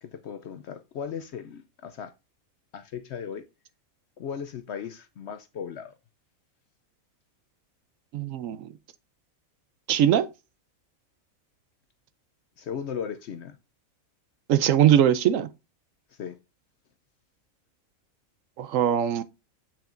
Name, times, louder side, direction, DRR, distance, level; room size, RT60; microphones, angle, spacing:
voice 1, 0.0-2.1 2.7-3.4 4.2-5.9 12.6-13.6 16.2-16.4, left 7 dB, 65° left, 0.7 m, -36 dB
voice 2, 8.1-8.7 9.9-10.3 14.5-15.5 18.6-19.2, right 10 dB, 70° right, 0.9 m, -21 dB
6.9 x 5.9 x 2.5 m
omnidirectional pair, 1.5 m